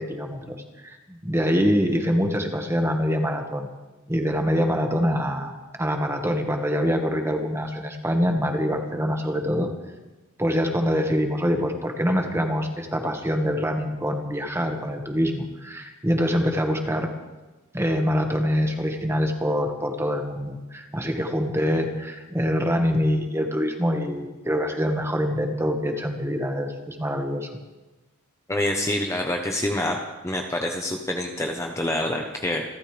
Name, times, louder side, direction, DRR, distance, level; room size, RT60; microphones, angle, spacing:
voice 1, 0.0-3.7 4.1-5.5 5.8-9.7 10.4-17.1 17.7-27.5, equal, 10° right, 3 dB, 1.6 m, -25 dB
voice 2, 28.5-30.0 30.2-32.6, left 1 dB, 15° left, 2 dB, 1.0 m, -26 dB
28.5 x 13.0 x 3.4 m, 1.1 s
head